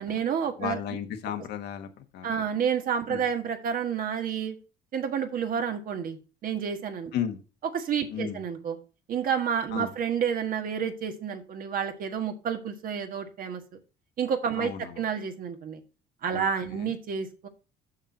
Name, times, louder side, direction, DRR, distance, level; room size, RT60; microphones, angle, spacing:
voice 1, 0.0-0.8 2.2-4.6 4.9-7.1 7.7-8.8 9.1-13.6 14.2-15.8 16.2-17.5, right 7 dB, 55° right, 6 dB, 1.6 m, -30 dB
voice 2, 0.6-2.3 3.1-3.2 7.1-7.4 8.1-8.4 9.7-9.9 14.6-15.0 16.3-16.9, left 9 dB, 80° left, 6 dB, 1.4 m, -34 dB
6.6 x 6.3 x 5.5 m, 0.33 s
cardioid pair, 110°, 17 cm